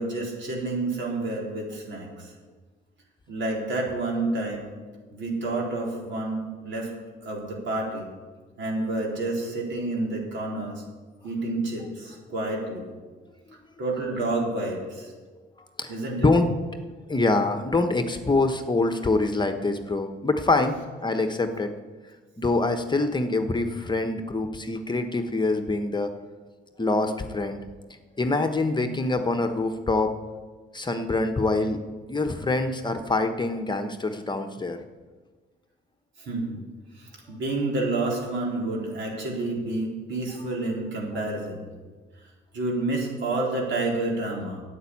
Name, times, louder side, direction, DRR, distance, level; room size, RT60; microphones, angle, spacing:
voice 1, 0.0-2.3 3.3-4.7 5.1-6.9 7.2-8.1 8.6-10.8 11.2-12.8 13.8-15.1 15.9-16.3 36.2-36.6 36.9-41.7 42.5-44.6, right 2 dB, 65° right, -2 dB, 4.2 m, -29 dB
voice 2, 16.2-16.5 17.1-21.7 22.4-26.1 26.8-27.6 28.2-30.1 30.7-31.8 32.1-34.8, left 2 dB, 20° left, 6 dB, 1.2 m, -25 dB
10.0 x 8.3 x 8.6 m, 1.4 s
supercardioid pair, 65°, 21 cm